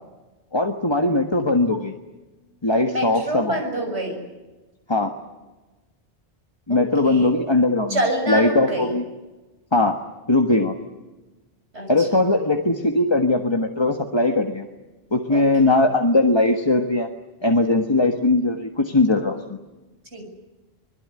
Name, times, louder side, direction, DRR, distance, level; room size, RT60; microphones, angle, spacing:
voice 1, 0.5-1.9 2.6-3.6 4.9-5.1 6.7-9.0 9.7-10.0 10.3-10.7 11.9-14.6 15.1-17.1 17.4-19.6, left 2 dB, 25° left, 4 dB, 1.5 m, -20 dB
voice 2, 2.9-4.3 6.7-7.3 7.9-8.9 11.7-12.1 15.3-15.8 20.1-20.3, right 1 dB, 90° right, 3 dB, 6.9 m, -27 dB
25.5 x 21.0 x 9.7 m, 1.2 s
omnidirectional pair, 1.1 m